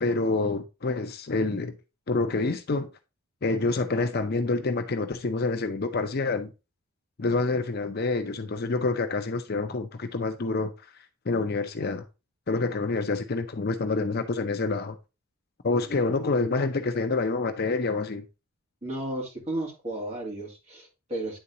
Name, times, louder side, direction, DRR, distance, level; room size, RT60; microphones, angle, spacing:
voice 1, 0.0-1.7 2.1-2.9 3.4-6.5 7.2-10.7 11.3-12.0 12.5-14.9 15.6-18.2, left 3 dB, 45° left, 0.6 m, -27 dB
voice 2, 18.8-21.4, right 1 dB, 30° right, 2.2 m, -33 dB
9.8 x 3.9 x 2.7 m
head